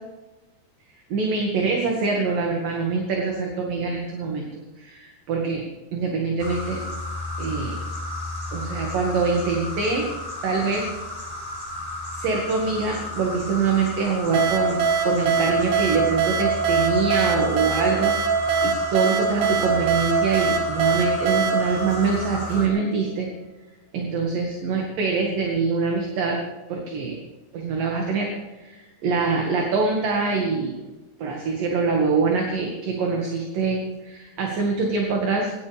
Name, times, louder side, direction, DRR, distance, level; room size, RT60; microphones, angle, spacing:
voice 1, 1.1-5.6 5.9-6.8 7.4-7.8 8.5-10.1 10.4-10.9 12.1-18.1 18.6-23.3 23.9-26.4 26.7-27.2 27.5-28.3 28.6-30.7 31.2-35.5, right 4 dB, 55° right, 0 dB, 3.3 m, -24 dB
sound 1, 6.4-22.7, left 2 dB, 10° right, 2.8 m, -33 dB
sound 2, 14.3-22.8, right 5 dB, 85° right, 4.3 m, -23 dB
19.0 x 17.5 x 3.5 m, 1.1 s
omnidirectional pair, 5.1 m